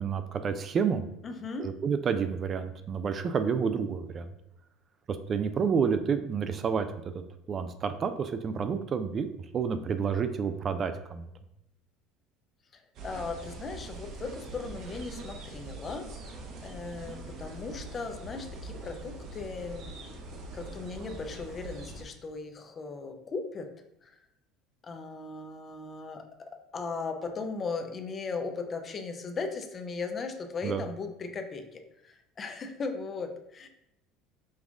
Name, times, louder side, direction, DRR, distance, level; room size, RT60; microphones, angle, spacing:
voice 1, 0.0-1.1 1.6-4.3 5.1-6.9 7.1-7.2 7.5-9.3 9.5-11.3 30.6-30.8, right 6 dB, 35° right, 10 dB, 0.3 m, -29 dB
voice 2, 1.2-1.7 13.0-19.9 20.5-23.7 24.0-24.1 24.8-26.2 26.7-33.7, left 4 dB, 35° left, 6 dB, 0.6 m, -37 dB
sound 1, 12.9-22.0, right 2 dB, 55° right, 0.8 m, -43 dB
5.3 x 2.4 x 3.5 m, 0.84 s
supercardioid pair, 100°, 0 cm